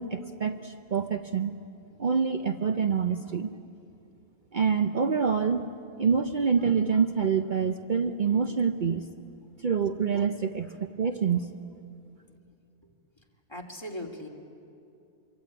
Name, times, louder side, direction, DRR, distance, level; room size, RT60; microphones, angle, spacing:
voice 1, 0.0-1.5 2.0-3.5 4.5-5.6 6.0-9.0 9.6-10.7 11.0-11.4, right 6 dB, 50° right, 7 dB, 0.9 m, -26 dB
voice 2, 13.5-14.3, left 1 dB, 25° left, 0 dB, 2.6 m, -39 dB
26.0 x 24.0 x 8.7 m, 2.6 s
omnidirectional pair, 1.1 m